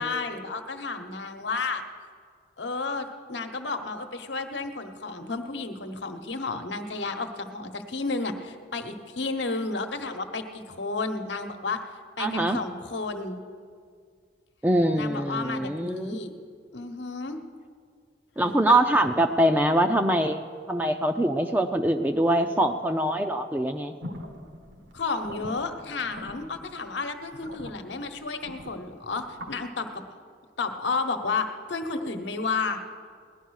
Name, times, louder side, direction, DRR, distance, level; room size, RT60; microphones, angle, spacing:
voice 1, 0.0-1.8 2.6-11.8 12.2-13.4 14.9-16.3 16.7-17.4 18.7-18.8 24.9-30.0 30.6-32.8, left 3 dB, 75° left, 6 dB, 1.1 m, -32 dB
voice 2, 12.2-12.6 14.6-16.2 18.4-20.4 20.7-23.9, right 1 dB, 10° right, 5 dB, 0.4 m, -23 dB
sound 1, 24.0-29.5, left 1 dB, 75° right, 1.4 m, -43 dB
17.5 x 11.0 x 6.4 m, 2.1 s
head